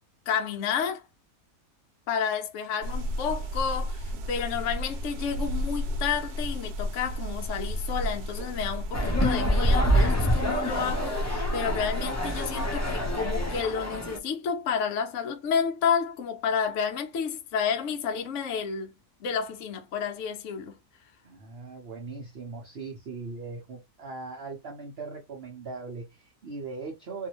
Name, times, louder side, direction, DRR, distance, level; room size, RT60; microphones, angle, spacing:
voice 1, 0.3-1.0 2.1-18.9 19.2-20.8, left 7 dB, 60° left, 0.9 m, -30 dB
sound 1, 2.8-13.6, left 1 dB, 80° right, 1.2 m, -32 dB
sound 2, 8.9-14.2, equal, 25° left, 0.3 m, -27 dB
voice 2, 21.2-27.3, right 4 dB, 45° right, 1.0 m, -39 dB
2.8 x 2.6 x 2.9 m
omnidirectional pair, 1.7 m